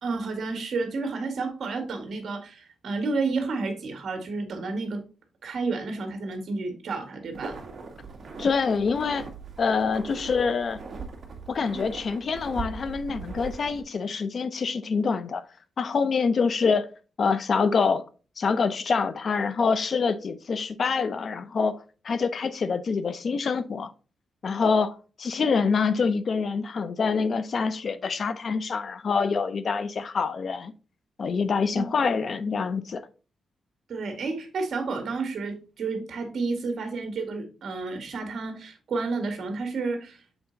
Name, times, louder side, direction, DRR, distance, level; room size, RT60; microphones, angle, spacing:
voice 1, 0.0-5.0 5.4-7.6 31.7-31.9 33.9-40.2, right 3 dB, 60° right, 1.9 m, -31 dB
sound 1, 7.3-13.8, right 4 dB, 45° right, 1.8 m, -40 dB
voice 2, 8.4-9.3 9.6-10.8 11.5-15.4 15.8-16.9 17.2-18.0 18.4-23.9 24.4-30.7 31.2-33.1, left 5 dB, 50° left, 0.6 m, -26 dB
7.1 x 4.2 x 3.9 m
cardioid pair, 115°, 0 cm